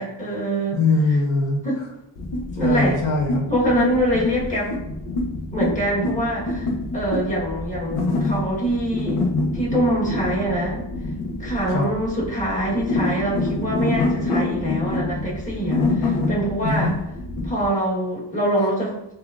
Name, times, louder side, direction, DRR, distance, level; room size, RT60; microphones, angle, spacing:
voice 1, 0.0-0.8 1.6-1.8 2.5-3.0 3.5-4.8 5.5-9.2 9.5-10.8 11.4-16.9 17.4-19.1, right 1 dB, 15° left, -6 dB, 1.3 m, -24 dB
voice 2, 0.7-1.9 2.6-3.5 11.7-11.8 16.6-16.9, left 3 dB, 65° left, -2 dB, 1.3 m, -22 dB
sound 1, 2.2-17.7, left 2 dB, 85° left, 0.8 m, -26 dB
6.7 x 2.5 x 2.4 m, 0.85 s
cardioid pair, 110°, 48 cm